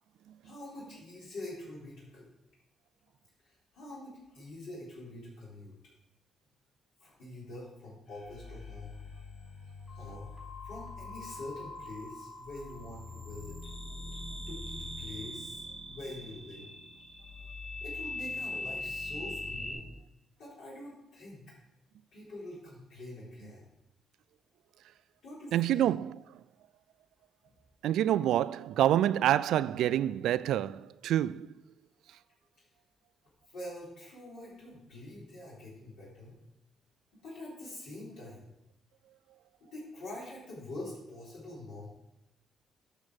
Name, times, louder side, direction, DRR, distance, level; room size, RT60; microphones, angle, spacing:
voice 1, 0.4-2.3 3.4-5.7 7.0-9.0 10.0-10.3 10.6-13.6 14.5-16.7 17.8-19.9 20.4-21.5 22.1-23.6 25.2-25.8 33.5-36.4 37.2-38.5 39.6-41.9, left 1 dB, 80° left, 3.8 m, -45 dB
sound 1, 8.1-19.7, left 2 dB, 60° left, 4.0 m, -42 dB
voice 2, 25.5-26.4 27.8-31.5, right 12 dB, 80° right, 0.3 m, -27 dB
8.6 x 6.0 x 6.2 m
cardioid pair, 90°, 0 cm